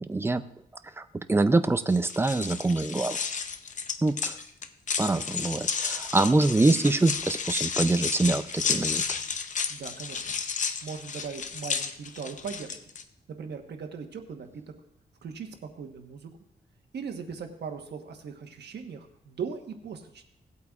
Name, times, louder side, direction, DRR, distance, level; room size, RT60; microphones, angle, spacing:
voice 1, 0.1-0.4 1.0-1.1 1.3-3.2 4.0-4.3 5.0-9.2, right 2 dB, 15° right, 11 dB, 0.4 m, -24 dB
sound 1, 1.9-13.0, left 6 dB, 45° left, 0.6 m, -32 dB
voice 2, 9.7-10.2 10.8-12.8 13.3-14.6 15.2-16.3 16.9-20.3, right 6 dB, 75° right, 4 dB, 1.2 m, -39 dB
17.5 x 8.4 x 2.4 m, 0.75 s
wide cardioid pair, 145°, 18 cm